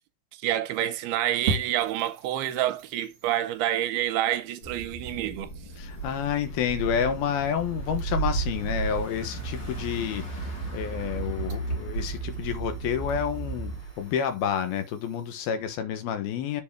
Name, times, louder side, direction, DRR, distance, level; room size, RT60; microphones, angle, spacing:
voice 1, 0.4-5.5, right 13 dB, 80° right, 2.6 m, -28 dB
sound 1, 1.5-15.5, right 4 dB, 40° right, 3.1 m, -42 dB
sound 2, 4.6-13.8, right 3 dB, 50° left, 2.9 m, -38 dB
voice 2, 5.8-10.4 10.7-16.6, left 8 dB, 75° left, 2.9 m, -29 dB
sound 3, 5.9-14.3, right 4 dB, 30° left, 2.6 m, -35 dB
7.4 x 4.8 x 4.7 m
omnidirectional pair, 4.6 m